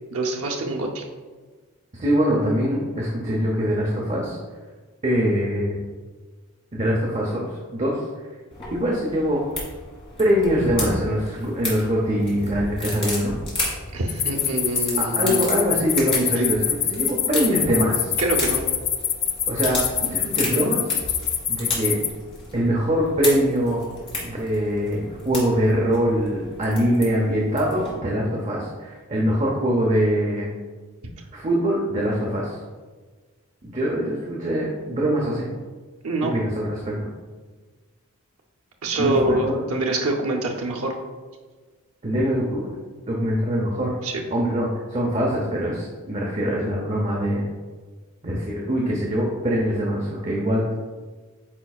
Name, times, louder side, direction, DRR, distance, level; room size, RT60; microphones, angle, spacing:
voice 1, 0.1-1.0 13.9-15.5 18.2-18.7 36.0-36.3 38.8-40.9 44.0-44.2, right 2 dB, 75° right, 1 dB, 0.7 m, -25 dB
voice 2, 1.9-4.4 5.0-5.8 6.7-8.0 8.7-9.4 10.2-13.3 15.2-18.1 19.5-21.0 21.5-22.0 22.5-23.8 24.2-30.5 31.3-32.6 33.6-35.5 36.2-37.1 39.0-39.6 42.0-42.8 43.1-43.9 44.3-47.4 48.2-50.8, equal, 30° right, -2 dB, 0.7 m, -23 dB
sound 1, 8.5-27.9, left 2 dB, 25° left, 1.8 m, -33 dB
sound 2, 14.1-22.1, left 9 dB, 45° left, 0.4 m, -24 dB
8.8 x 4.6 x 2.4 m, 1.4 s
head